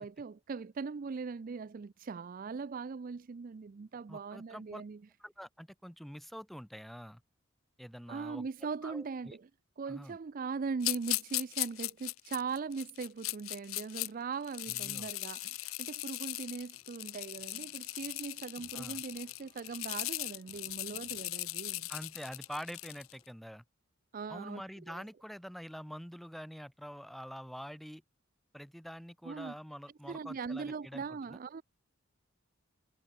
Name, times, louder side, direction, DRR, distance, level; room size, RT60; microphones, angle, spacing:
voice 1, 0.0-5.0 8.1-9.5 9.8-21.9 24.1-24.6 24.9-25.0 29.2-29.5 30.0-31.6, right 5 dB, 40° right, 0.4 m, -40 dB
voice 2, 4.1-4.8 5.2-7.2 7.8-8.5 8.8-9.4 9.9-10.2 14.7-15.1 18.7-19.0 21.9-23.6 24.3-28.0 28.5-31.4, equal, ahead, 2.2 m, -46 dB
sound 1, 10.8-14.1 14.4-23.1, left 19 dB, 80° left, 0.5 m, -38 dB
sound 2, 16.7-23.3, left 1 dB, 20° left, 5.6 m, -67 dB
head